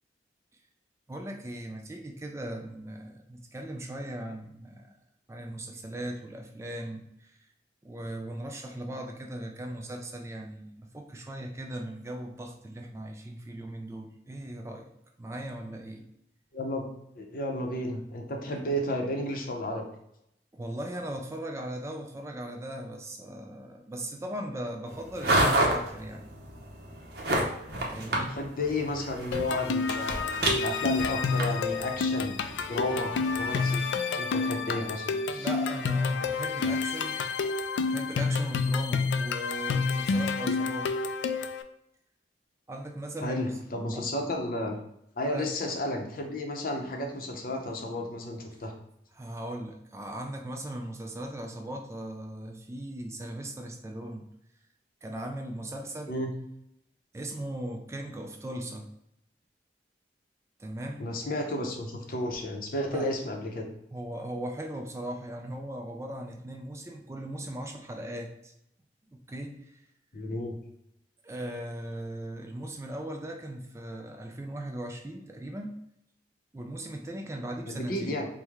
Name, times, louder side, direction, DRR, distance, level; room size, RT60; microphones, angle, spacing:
voice 1, 1.1-4.9 5.3-7.4 7.8-14.9 15.2-16.1 20.5-26.2 27.8-28.4 35.3-37.2 37.9-40.9 42.7-43.5 43.9-44.1 45.3-45.5 49.1-54.3 55.0-56.2 57.1-58.9 60.6-61.1 61.6-61.7 62.9-63.1 63.9-68.5 69.1-69.8 71.2-75.7 76.5-78.2, right 1 dB, 15° right, 3 dB, 0.3 m, -38 dB
voice 2, 16.5-16.9 17.2-19.9 28.3-32.4 32.7-33.8 34.2-35.5 43.2-44.8 45.2-48.7 56.1-56.3 61.0-63.7 70.1-70.6 77.7-78.3, left 1 dB, 50° left, 3 dB, 0.6 m, -32 dB
sound 1, 24.9-33.7, right 1 dB, 60° right, 0.8 m, -31 dB
sound 2, 29.3-41.6, left 4 dB, 90° left, 0.3 m, -29 dB
4.6 x 2.1 x 3.5 m, 0.79 s
head